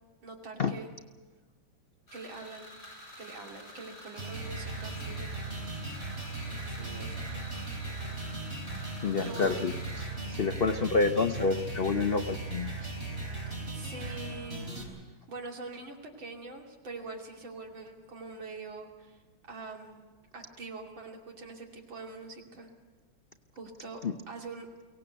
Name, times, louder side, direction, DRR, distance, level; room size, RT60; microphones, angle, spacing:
voice 1, 0.2-0.9 2.1-2.7 3.2-5.9 6.7-7.5 9.2-9.7 10.5-10.7 13.7-14.7 15.3-19.2 19.5-20.1 20.3-22.7 23.5-24.0 24.3-24.7, right 3 dB, 75° right, 1 dB, 3.5 m, -44 dB
sound 1, 2.1-10.1, left 1 dB, 55° left, 8.5 m, -49 dB
sound 2, 4.2-14.8, right 2 dB, 30° right, 4.1 m, -38 dB
voice 2, 9.0-9.7 10.3-12.9 24.0-24.1, left 4 dB, 80° left, 8 dB, 0.5 m, -28 dB
23.5 x 17.5 x 8.1 m, 1.3 s
omnidirectional pair, 2.1 m